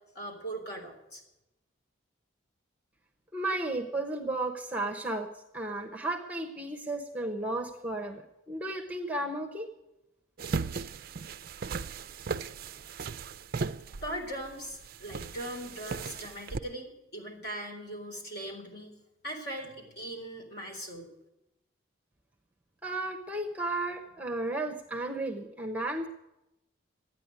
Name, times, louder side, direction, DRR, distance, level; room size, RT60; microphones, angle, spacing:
voice 1, 0.1-1.2 14.0-18.9 19.2-21.1, right 1 dB, 50° left, 1 dB, 4.0 m, -40 dB
voice 2, 3.3-8.2 8.5-9.7 22.8-26.1, right 2 dB, 5° right, 4 dB, 0.9 m, -34 dB
sound 1, 10.4-16.6, right 4 dB, 45° right, 0.4 m, -37 dB
13.0 x 9.7 x 9.6 m, 0.91 s
head